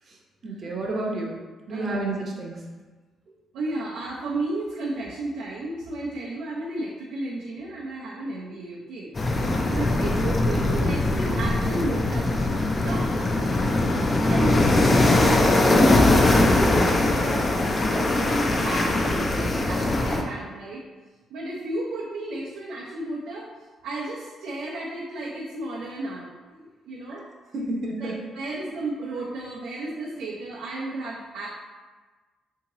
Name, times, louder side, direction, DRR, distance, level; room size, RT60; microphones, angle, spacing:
voice 1, 0.4-1.4 1.7-2.6 27.1-27.2 27.5-28.2, right 2 dB, 50° right, -1 dB, 0.7 m, -30 dB
voice 2, 1.7-2.2 3.5-12.3 12.8-13.1 14.3-16.4 17.0-20.8 21.3-23.5 23.8-27.2 28.0-31.5, right 2 dB, 90° right, -6 dB, 0.5 m, -33 dB
sound 1, 9.1-20.2, left 2 dB, 30° left, 0.4 m, -21 dB
3.6 x 2.8 x 2.9 m, 1.3 s
cardioid pair, 90°, 0 cm